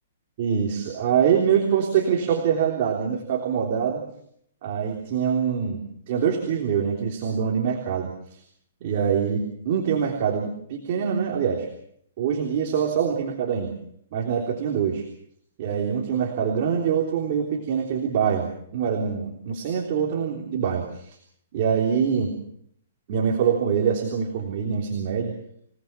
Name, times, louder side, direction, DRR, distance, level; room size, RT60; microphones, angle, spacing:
voice 1, 0.4-4.0 4.6-8.4 8.8-11.7 12.2-13.7 14.1-15.0 15.6-21.1 21.5-22.3 23.1-25.3, right 7 dB, 35° right, -1 dB, 3.4 m, -24 dB
28.0 x 19.0 x 5.9 m, 0.68 s
hypercardioid pair, 175°, 0 cm